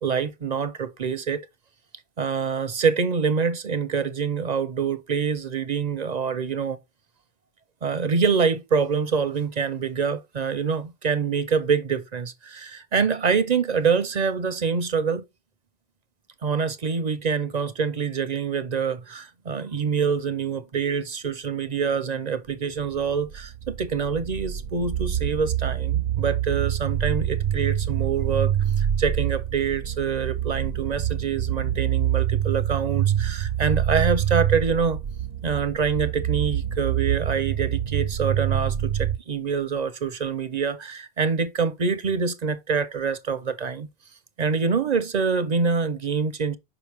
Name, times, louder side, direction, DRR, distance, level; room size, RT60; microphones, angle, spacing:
voice 1, 0.0-1.4 2.2-6.8 7.8-15.2 16.4-35.0 35.4-43.9 44.4-46.6, right 5 dB, 45° right, 0.7 m, -25 dB
sound 1, 22.9-39.2, right 10 dB, 75° right, 0.9 m, -26 dB
6.2 x 5.0 x 3.4 m
omnidirectional pair, 1.1 m